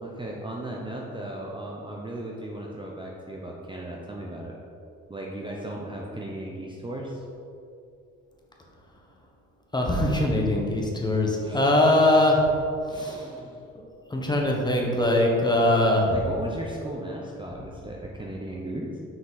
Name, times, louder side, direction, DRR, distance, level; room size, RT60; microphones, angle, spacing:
voice 1, 0.0-4.5 5.1-7.2 11.4-11.6 12.9-13.6 16.1-19.0, right 1 dB, 15° right, -2 dB, 0.7 m, -36 dB
voice 2, 9.7-12.5 12.9-13.2 14.1-16.2, left 1 dB, 15° left, -1 dB, 1.1 m, -22 dB
6.0 x 4.7 x 4.0 m, 2.6 s
cardioid pair, 90°, 30 cm